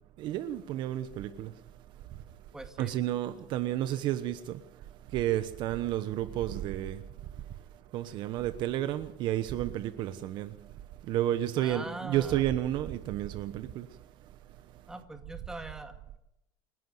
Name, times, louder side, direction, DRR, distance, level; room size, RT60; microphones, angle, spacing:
voice 1, 0.2-1.5 2.1-2.2 2.8-4.7 5.1-7.1 7.9-10.7 11.0-14.0, right 12 dB, 45° right, 1.1 m, -31 dB
voice 2, 2.5-2.9 11.6-12.4 14.9-15.9, right 2 dB, 5° right, 2.2 m, -42 dB
28.5 x 11.5 x 8.0 m
cardioid pair, 155°, 10 cm